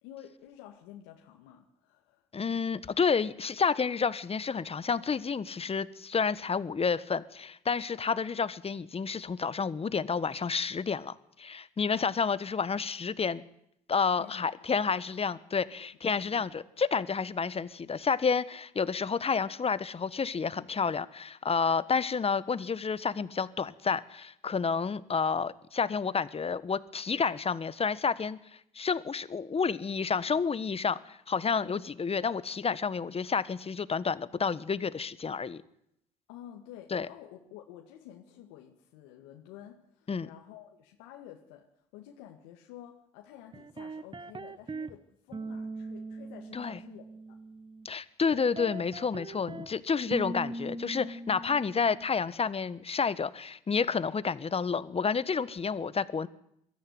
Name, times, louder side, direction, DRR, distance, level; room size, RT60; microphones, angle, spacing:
voice 1, 0.0-2.3 12.8-12.9 14.2-14.9 16.2-16.5 31.6-31.8 36.3-41.7 41.9-47.4, left 11 dB, 80° left, 2 dB, 2.0 m, -50 dB
voice 2, 2.3-13.4 13.9-35.6 36.9-37.1 40.1-40.3 46.5-46.8 47.8-56.3, left 5 dB, 35° left, 16 dB, 1.4 m, -30 dB
sound 1, 43.5-44.9 45.3-47.9 48.3-49.7 50.1-52.1, right 2 dB, 30° right, 1.3 m, -40 dB
22.5 x 14.0 x 9.6 m, 0.77 s
hypercardioid pair, 60°, 18 cm